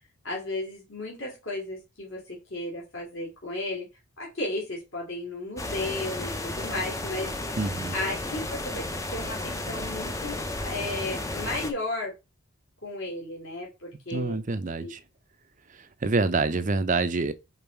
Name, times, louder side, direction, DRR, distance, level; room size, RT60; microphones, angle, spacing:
voice 1, 0.2-3.9 4.2-7.6 7.9-12.1 12.8-14.4 14.8-14.9, left 2 dB, 60° left, 2.7 m, -34 dB
sound 1, 5.6-11.7, left 2 dB, 15° left, 0.6 m, -33 dB
voice 2, 7.6-8.0 14.1-15.0 15.7-17.3, right 3 dB, 35° right, 0.5 m, -27 dB
5.4 x 4.0 x 4.5 m
head